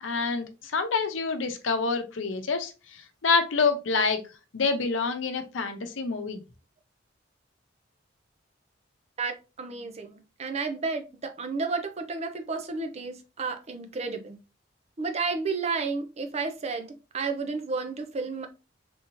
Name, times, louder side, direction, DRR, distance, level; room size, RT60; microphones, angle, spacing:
voice 1, 0.0-4.2 4.5-6.4, left 4 dB, 85° left, 0.7 m, -27 dB
voice 2, 9.2-14.4 15.0-18.5, right 4 dB, 35° right, 0.5 m, -32 dB
3.5 x 2.7 x 2.9 m
head